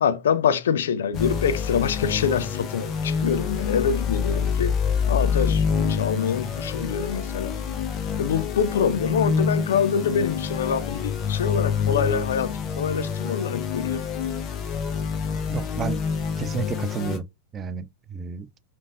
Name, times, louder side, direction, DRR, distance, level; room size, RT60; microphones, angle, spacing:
voice 1, 0.0-4.8 5.1-7.6 8.2-14.1, left 7 dB, 60° left, 0.6 m, -25 dB
sound 1, 1.1-17.2, left 6 dB, 30° left, 1.0 m, -27 dB
voice 2, 15.5-16.0 16.4-17.2 17.5-17.8 18.1-18.5, right 7 dB, 25° right, 0.4 m, -31 dB
5.1 x 3.6 x 2.5 m
figure-of-eight pair, 90°, 0 cm